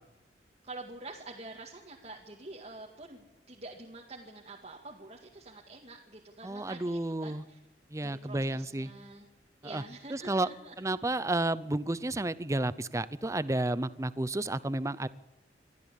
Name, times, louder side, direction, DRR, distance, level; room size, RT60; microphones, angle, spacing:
voice 1, 0.6-7.6 8.0-9.3 9.6-10.7, right 2 dB, 35° right, -1 dB, 2.1 m, -47 dB
voice 2, 6.4-7.4 7.9-8.9 9.6-9.8 10.1-10.5 10.8-15.1, right 2 dB, 15° right, 17 dB, 0.6 m, -31 dB
24.0 x 14.0 x 8.4 m, 0.96 s
head